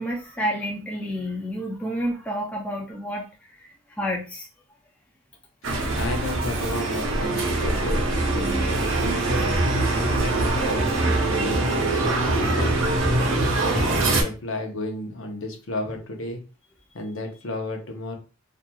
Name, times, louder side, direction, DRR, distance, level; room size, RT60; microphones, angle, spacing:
voice 1, 0.0-3.2 3.9-4.5 9.7-10.0, equal, 5° left, -1 dB, 0.3 m, -29 dB
sound 1, 5.6-14.2, right 2 dB, 70° right, 0.6 m, -23 dB
voice 2, 5.9-9.2 9.9-12.7 13.5-16.4 16.9-18.2, left 2 dB, 70° left, 3 dB, 0.7 m, -33 dB
2.9 x 2.4 x 2.2 m, 0.33 s
head